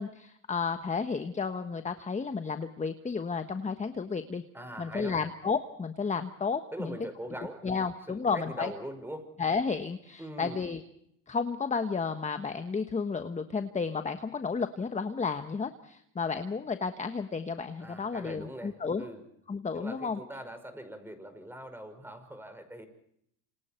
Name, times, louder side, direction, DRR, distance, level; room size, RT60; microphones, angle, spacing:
voice 1, 0.0-4.4 4.8-7.0 7.6-8.7 9.4-10.8 11.3-19.0 19.5-20.2, left 5 dB, 20° left, 8 dB, 1.3 m, -32 dB
voice 2, 4.5-5.2 6.7-7.7 8.1-9.3 10.2-10.6 17.8-19.2 19.7-22.9, right 1 dB, 5° right, 8 dB, 5.7 m, -42 dB
27.5 x 26.5 x 4.5 m, 0.72 s
supercardioid pair, 100°, 37 cm